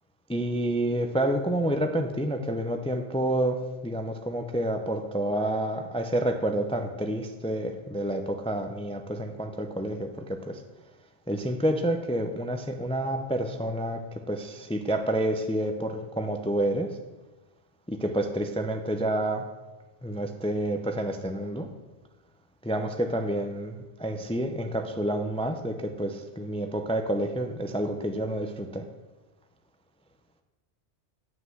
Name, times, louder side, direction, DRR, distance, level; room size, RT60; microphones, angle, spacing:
voice 1, 0.3-10.6 11.3-17.0 17.9-19.5 20.0-21.7 22.6-28.9, right 1 dB, 5° left, 6 dB, 0.5 m, -29 dB
10.0 x 5.7 x 7.8 m, 1.2 s
omnidirectional pair, 1.2 m